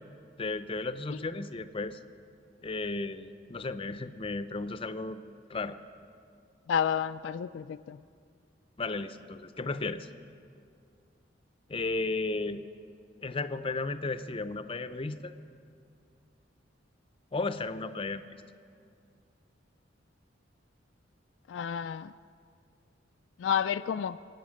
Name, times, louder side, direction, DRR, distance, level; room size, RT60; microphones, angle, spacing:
voice 1, 0.4-2.0 2.6-5.2 5.5-5.8 8.8-10.1 11.7-12.6 13.2-15.3 17.3-18.3, left 3 dB, 30° left, 11 dB, 0.6 m, -34 dB
voice 2, 6.7-8.0 21.5-22.1 23.4-24.2, left 8 dB, 70° left, 12 dB, 0.3 m, -30 dB
25.0 x 9.1 x 6.4 m, 2.3 s
head